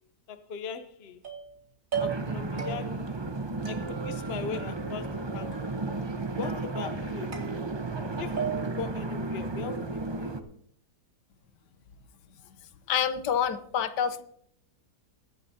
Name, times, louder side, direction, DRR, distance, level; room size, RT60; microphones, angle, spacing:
voice 1, 0.3-1.2 2.0-3.3 3.6-5.8 6.4-7.4 8.2-10.3, left 6 dB, 45° left, 1.0 m, -39 dB
sound 1, 1.2-1.6 1.9-2.3 2.6-3.1 3.7-4.3 4.5-5.2 5.5-6.0 6.4-6.9 7.3-8.0 8.4-8.9, right 7 dB, 55° right, 2.7 m, -37 dB
sound 2, 1.9-10.4, right 3 dB, 30° right, 0.5 m, -33 dB
voice 2, 12.9-14.2, left 8 dB, 85° left, 1.4 m, -27 dB
22.0 x 10.5 x 2.8 m
omnidirectional pair, 1.8 m